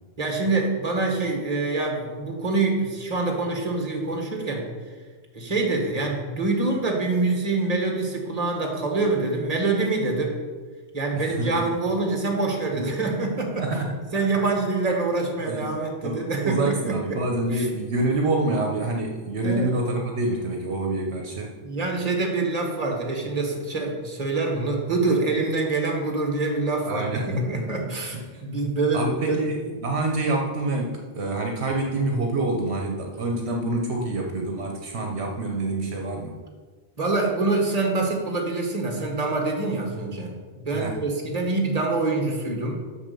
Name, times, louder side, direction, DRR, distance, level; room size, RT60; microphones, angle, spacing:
voice 1, 0.2-4.7 5.3-10.4 10.9-13.7 14.1-17.2 17.5-17.7 19.4-19.7 21.6-29.5 37.0-42.7, right 3 dB, 35° right, 1 dB, 1.6 m, -25 dB
voice 2, 11.1-11.7 12.7-12.9 13.6-14.2 15.5-15.7 16.0-21.6 26.9-27.7 28.1-28.4 28.9-36.3 40.7-41.0, right 2 dB, 70° right, 1 dB, 1.2 m, -27 dB
7.2 x 5.5 x 6.8 m, 1.5 s
omnidirectional pair, 1.2 m